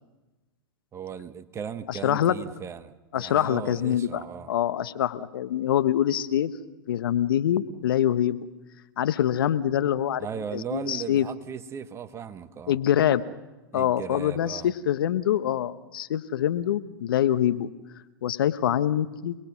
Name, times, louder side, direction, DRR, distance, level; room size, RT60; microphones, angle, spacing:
voice 1, 0.9-4.5 10.2-12.8 13.7-14.7, right 7 dB, 20° right, 11 dB, 1.2 m, -37 dB
voice 2, 1.9-2.3 3.1-6.5 6.9-8.4 9.0-10.3 10.5-11.3 12.7-13.2 13.7-17.7 18.2-19.4, left 10 dB, 70° left, 13 dB, 1.2 m, -25 dB
28.5 x 20.5 x 6.1 m, 1.1 s
hypercardioid pair, 110°, 12 cm